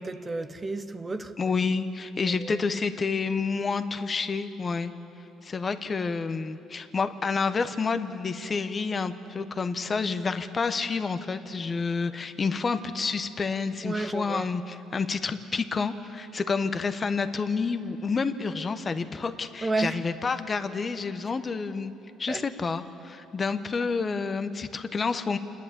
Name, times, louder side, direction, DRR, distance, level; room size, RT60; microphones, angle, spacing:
voice 1, 0.1-1.4 2.2-2.6 13.8-14.5 19.6-20.0 22.3-22.4, right 3 dB, 25° right, 1.2 m, -31 dB
voice 2, 1.4-4.9 5.4-21.9 22.2-25.4, left 4 dB, 35° left, 1.1 m, -29 dB
28.0 x 10.5 x 8.7 m
supercardioid pair, 75°, 0 cm